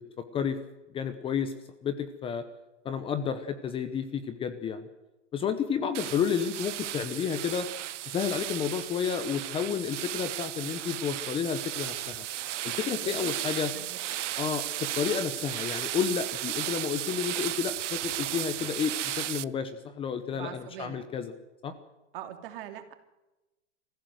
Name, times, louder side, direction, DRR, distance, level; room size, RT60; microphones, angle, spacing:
voice 1, 0.9-1.5 1.8-2.4 2.8-4.9 5.3-7.7 8.1-12.2 12.6-13.7 14.4-21.3 21.6-21.7, left 7 dB, 15° left, 11 dB, 0.9 m, -31 dB
sound 1, 5.9-19.4, right 13 dB, 80° right, 0.7 m, -35 dB
voice 2, 13.0-13.3 13.7-14.0 20.3-21.0 22.1-22.9, right 11 dB, 50° right, 7 dB, 2.9 m, -42 dB
24.5 x 15.0 x 7.8 m, 1.0 s
hypercardioid pair, 150°, 36 cm